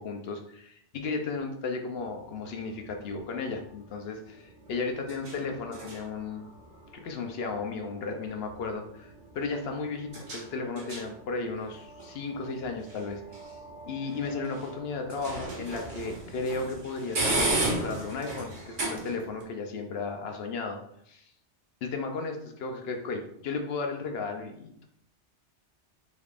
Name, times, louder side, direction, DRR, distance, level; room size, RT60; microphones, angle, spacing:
voice 1, 0.0-6.4 6.9-13.2 13.8-20.8 21.1-21.3 21.8-24.9, left 4 dB, 65° left, 4 dB, 0.8 m, -34 dB
sound 1, 2.0-19.4, right 2 dB, 45° right, 1.0 m, -37 dB
4.1 x 3.4 x 2.4 m, 0.70 s
omnidirectional pair, 1.2 m